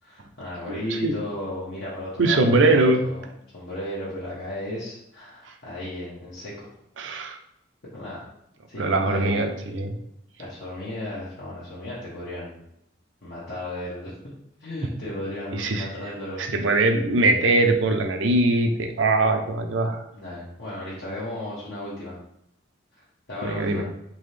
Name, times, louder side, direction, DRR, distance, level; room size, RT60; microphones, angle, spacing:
voice 1, 0.0-6.7 7.9-8.2 8.7-9.5 10.4-12.6 13.2-14.2 14.6-16.5 20.1-22.2 22.9-23.8, left 1 dB, 65° left, -9 dB, 1.1 m, -35 dB
voice 2, 2.2-3.0 7.0-7.4 8.8-10.0 15.5-15.9 16.4-20.0 23.4-23.8, right 2 dB, 80° right, 5 dB, 0.6 m, -21 dB
3.8 x 2.8 x 3.2 m, 0.78 s
head